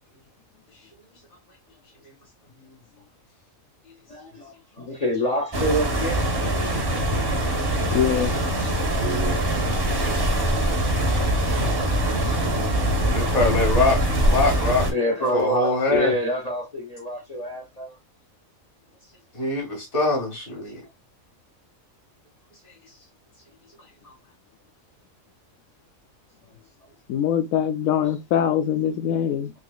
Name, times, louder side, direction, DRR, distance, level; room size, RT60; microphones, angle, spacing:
voice 1, 4.1-6.9 8.5-8.7 14.9-18.0, equal, 35° left, 0.7 m, -28 dB
sound 1, 5.5-14.9, right 1 dB, 20° right, 0.7 m, -23 dB
voice 2, 7.9-8.4 27.1-29.5, left 9 dB, 80° left, 1.1 m, -23 dB
voice 3, 9.0-9.5 10.6-10.8 11.1-11.3 13.1-14.9 15.3-16.1 19.3-20.8, left 2 dB, 55° left, 2.0 m, -24 dB
3.9 x 3.0 x 2.3 m
omnidirectional pair, 1.4 m